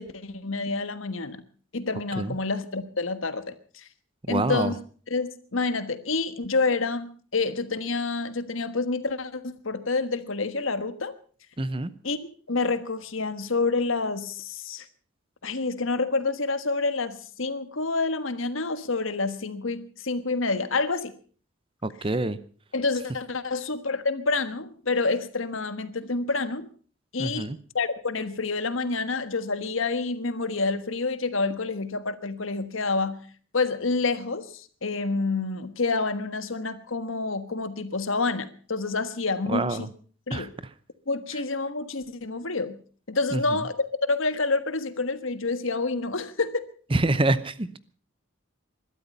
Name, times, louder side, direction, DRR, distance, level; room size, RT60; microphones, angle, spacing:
voice 1, 0.0-1.4 1.7-3.9 4.3-4.7 5.1-11.1 12.0-14.9 15.4-21.1 22.7-26.7 27.1-27.5 27.7-33.2 33.5-39.9 40.3-40.5 41.1-42.8 43.1-46.6, left 3 dB, 80° left, 11 dB, 1.4 m, -28 dB
voice 2, 4.3-4.7 11.6-11.9 21.8-22.4 27.2-27.6 39.5-39.9 40.3-40.5 43.3-43.4 46.9-47.8, right 2 dB, 25° right, 15 dB, 0.7 m, -26 dB
21.0 x 12.5 x 5.4 m, 0.43 s
head